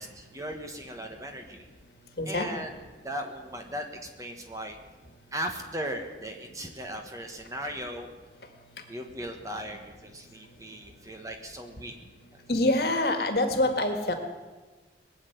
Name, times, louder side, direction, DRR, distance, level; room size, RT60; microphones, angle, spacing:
voice 1, 0.0-1.7 2.3-2.7 3.0-3.9 4.2-4.8 5.3-8.1 8.9-11.9 12.3-12.4, equal, 20° right, 4 dB, 1.4 m, -37 dB
voice 2, 2.2-2.7 12.5-14.1, left 1 dB, 55° left, 5 dB, 1.8 m, -25 dB
20.5 x 7.1 x 9.4 m, 1.3 s
head